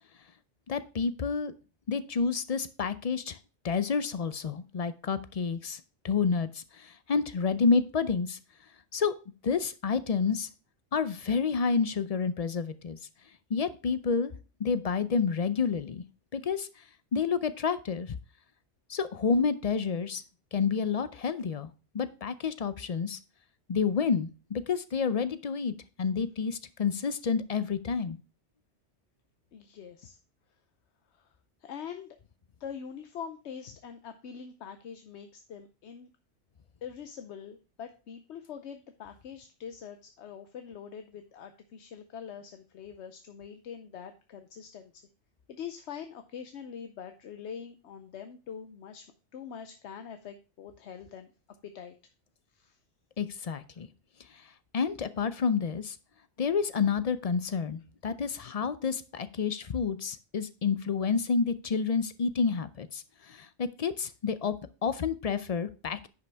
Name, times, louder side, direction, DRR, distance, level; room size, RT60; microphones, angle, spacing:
voice 1, 0.7-1.5 1.9-3.4 3.6-8.4 8.9-9.1 9.4-10.5 10.9-13.0 13.5-14.3 14.6-16.0 16.3-16.7 17.1-18.2 18.9-20.2 20.5-21.7 21.9-23.2 23.7-28.2 53.2-53.9 54.7-56.0 56.4-64.5 64.8-66.1, left 5 dB, 45° left, 13 dB, 0.5 m, -29 dB
voice 2, 29.5-30.2 31.6-32.1 32.6-36.1 36.8-44.9 45.5-49.1 49.3-51.3 51.7-51.9 52.5-52.7, left 7 dB, 70° left, 8 dB, 1.0 m, -44 dB
10.5 x 5.7 x 3.4 m, 0.34 s
omnidirectional pair, 1.2 m